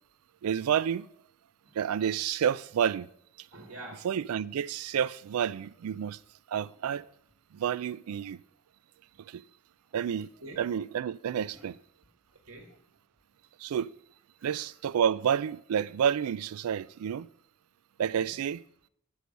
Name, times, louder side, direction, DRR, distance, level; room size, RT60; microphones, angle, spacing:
voice 1, 0.4-1.1 1.7-3.1 4.0-6.2 6.5-7.1 7.5-8.4 9.2-9.4 9.9-10.3 10.6-11.8 13.6-13.9 14.4-17.3 18.0-18.6, right 8 dB, 90° right, 0.3 m, -29 dB
voice 2, 3.5-4.1 5.8-5.9 10.4-10.6 11.5-11.7 12.3-12.8 14.4-14.7 18.1-18.3, right 2 dB, 70° right, 1.6 m, -47 dB
8.4 x 6.4 x 5.1 m
head